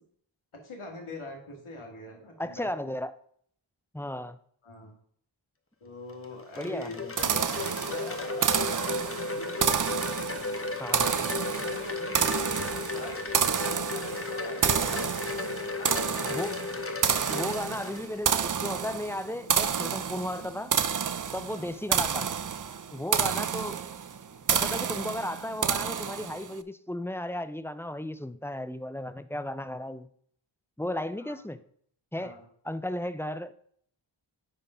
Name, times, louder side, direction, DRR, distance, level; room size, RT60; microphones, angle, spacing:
voice 1, 0.5-2.9 4.6-4.9 5.8-9.9 11.4-13.2 13.6-16.6 21.4-21.7 24.5-24.6 31.2-31.4 32.1-32.4, left 2 dB, 75° left, 1 dB, 2.1 m, -44 dB
voice 2, 2.4-3.1 3.9-4.4 6.6-7.1 10.8-11.4 16.3-16.6 17.3-20.7 21.3-22.3 22.9-23.8 24.5-30.1 30.8-31.6 32.1-32.4 32.6-33.5, left 1 dB, 5° left, 12 dB, 0.5 m, -35 dB
Wind chime, 6.1-18.3, left 3 dB, 25° left, 1.0 m, -35 dB
sound 1, 7.2-26.5, right 7 dB, 40° right, 0.5 m, -29 dB
sound 2, 7.9-25.0, equal, 50° left, 2.4 m, -62 dB
9.1 x 3.7 x 5.5 m, 0.62 s
cardioid pair, 40°, 50 cm